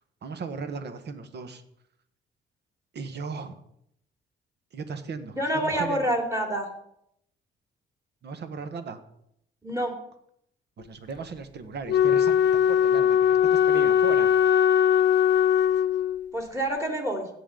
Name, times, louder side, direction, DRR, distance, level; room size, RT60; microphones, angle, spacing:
voice 1, 0.2-1.6 2.9-3.6 4.7-6.0 8.2-9.0 10.8-13.2 13.5-14.5, right 5 dB, 60° right, 9 dB, 1.3 m, -37 dB
voice 2, 5.3-6.7 9.6-9.9 16.3-17.3, right 1 dB, 15° right, 2 dB, 2.6 m, -27 dB
Wind instrument woodwind instrument, 11.9-16.3, left 9 dB, 60° left, 0.5 m, -20 dB
16.5 x 7.2 x 3.9 m, 0.74 s
cardioid pair, 90°, 20 cm